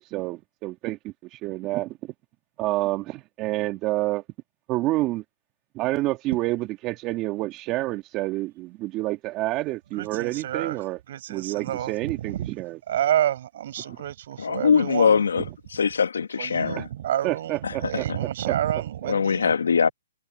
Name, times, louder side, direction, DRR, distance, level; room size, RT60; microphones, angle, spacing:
voice 1, 0.0-1.9 2.6-4.2 4.7-5.2 5.7-11.0 11.3-12.8 16.8-16.9 17.2-18.0 18.5-18.6 19.0-19.1, right 18 dB, 25° right, 1.8 m, -28 dB
voice 2, 10.0-12.5 12.9-15.5 16.4-19.5, right 11 dB, 50° right, 5.4 m, -29 dB
voice 3, 14.4-15.4 15.7-16.8 17.6-18.0 19.1-19.9, left 6 dB, 85° left, 1.8 m, -22 dB
hypercardioid pair, 150°, 0 cm